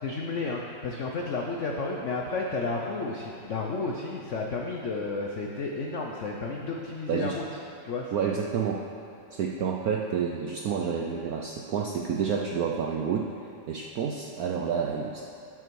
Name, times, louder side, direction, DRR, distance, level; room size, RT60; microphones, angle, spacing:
voice 1, 0.0-7.6 7.8-8.1, left 3 dB, 80° left, 0 dB, 0.6 m, -32 dB
voice 2, 8.1-8.8 9.3-13.3 13.7-15.2, right 6 dB, 80° right, 1 dB, 0.8 m, -29 dB
12.5 x 6.0 x 4.6 m, 2.5 s
omnidirectional pair, 2.2 m